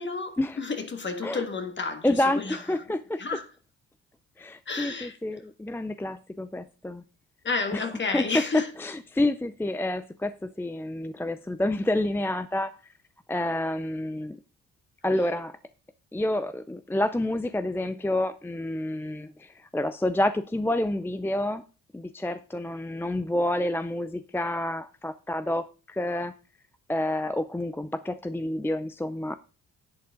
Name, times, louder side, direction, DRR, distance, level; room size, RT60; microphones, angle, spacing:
voice 1, 0.0-2.6 3.2-3.5 4.7-5.2 7.4-8.7, left 4 dB, 40° left, 1.8 m, -31 dB
voice 2, 2.0-3.2 4.4-7.0 7.7-7.8 8.1-12.9 13.3-14.4 15.0-15.6 16.1-21.6 21.9-26.3 26.9-29.4, left 1 dB, 5° left, 0.5 m, -28 dB
10.5 x 8.4 x 3.7 m
cardioid pair, 90°, 30 cm